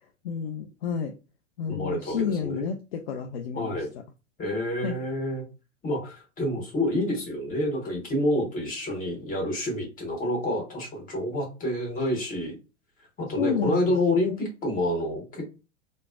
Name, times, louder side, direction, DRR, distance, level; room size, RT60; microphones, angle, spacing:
voice 1, 0.2-1.1 1.6-3.8 4.8-5.0 13.4-13.9, left 7 dB, 50° left, 5 dB, 0.5 m, -30 dB
voice 2, 1.7-2.6 3.5-3.9 4.4-5.4 5.8-12.5 13.2-15.5, left 1 dB, 20° left, 0 dB, 1.3 m, -28 dB
3.2 x 2.0 x 2.4 m, 0.30 s
figure-of-eight pair, 95°, 38 cm